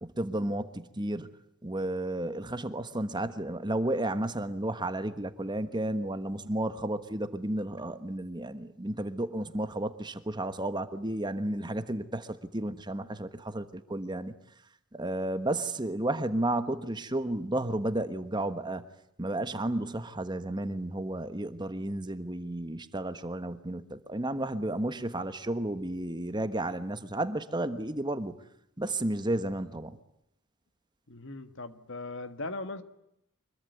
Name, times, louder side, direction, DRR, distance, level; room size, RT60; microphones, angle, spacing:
voice 1, 0.0-1.3 1.6-14.3 14.9-18.8 19.2-28.4 28.8-30.0, right 1 dB, 20° right, 11 dB, 1.3 m, -32 dB
voice 2, 31.1-32.8, left 2 dB, 60° left, 11 dB, 1.7 m, -39 dB
25.0 x 22.5 x 9.6 m, 0.78 s
head